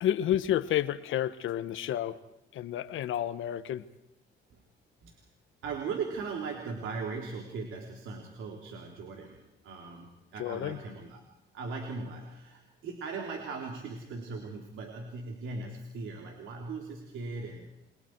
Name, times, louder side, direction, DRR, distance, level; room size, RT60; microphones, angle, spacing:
voice 1, 0.0-2.2 2.5-3.8 10.4-10.8, left 11 dB, 80° left, 13 dB, 1.2 m, -30 dB
voice 2, 5.6-11.2 11.5-17.7, right 4 dB, 80° right, 1 dB, 3.2 m, -39 dB
28.5 x 23.5 x 4.7 m, 0.91 s
cardioid pair, 90°, 20 cm